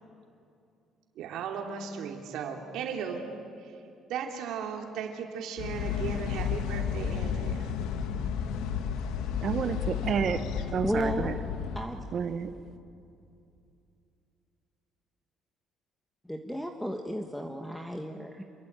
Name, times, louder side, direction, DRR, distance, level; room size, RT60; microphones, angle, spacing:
voice 1, 1.1-3.2 3.6-3.8 4.1-7.7, right 6 dB, 75° right, 2 dB, 3.0 m, -36 dB
sound 1, 5.6-11.8, left 7 dB, 90° left, 1.9 m, -32 dB
voice 2, 9.4-10.4 10.7-11.4 12.1-12.5, right 7 dB, 40° right, 9 dB, 1.1 m, -30 dB
voice 3, 10.8-11.3 11.7-12.0 16.2-18.4, equal, ahead, 4 dB, 1.3 m, -33 dB
28.5 x 23.0 x 8.9 m, 2.6 s
cardioid pair, 160°, 0 cm